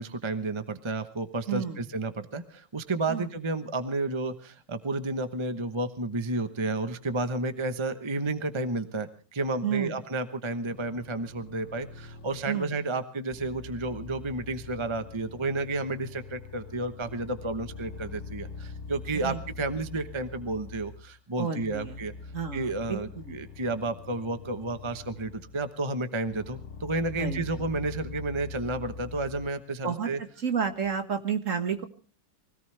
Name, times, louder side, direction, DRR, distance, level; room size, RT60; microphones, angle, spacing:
voice 1, 0.0-22.1 22.5-30.2, right 2 dB, 20° right, 9 dB, 0.9 m, -31 dB
voice 2, 1.5-1.8 3.1-3.3 9.6-9.9 12.5-12.7 19.1-19.4 21.4-22.0 22.3-23.4 27.2-27.4 29.8-30.1 30.4-31.8, right 7 dB, 50° right, 7 dB, 1.9 m, -30 dB
sound 1, 10.7-12.7 13.3-21.2 21.6-25.8 26.3-29.5, left 4 dB, 45° left, 1.3 m, -44 dB
24.0 x 17.5 x 3.3 m, 0.38 s
omnidirectional pair, 1.9 m